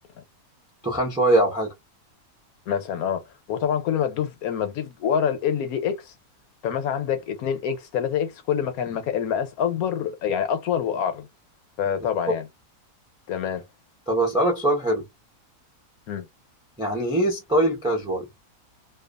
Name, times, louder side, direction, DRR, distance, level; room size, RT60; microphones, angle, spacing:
voice 1, 0.8-1.7 14.1-15.1 16.8-18.3, right 1 dB, 5° right, 0.6 m, -22 dB
voice 2, 2.7-6.1 6.6-11.3 11.8-12.5 13.3-13.6 16.1-16.3, left 8 dB, 75° left, 1.1 m, -26 dB
2.6 x 2.4 x 2.3 m
omnidirectional pair, 1.6 m